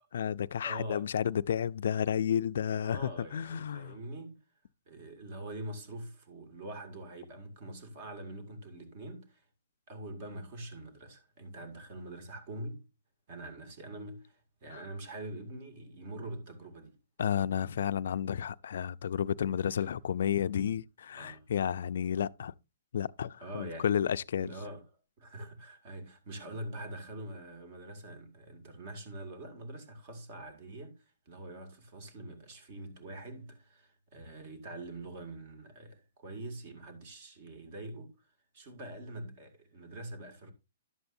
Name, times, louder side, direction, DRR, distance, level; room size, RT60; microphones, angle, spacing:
voice 1, 0.1-4.0 14.7-14.8 17.2-22.5 22.9-24.5, left 8 dB, 70° left, 0.3 m, -31 dB
voice 2, 0.6-1.1 2.7-4.4 4.9-9.4 9.9-12.8 13.3-17.0 19.6-19.9 21.1-21.5 23.4-23.9 24.4-24.8 25.2-38.3 38.5-40.5, right 1 dB, 45° right, 2.1 m, -44 dB
11.0 x 7.8 x 2.6 m
hypercardioid pair, 155°, 0 cm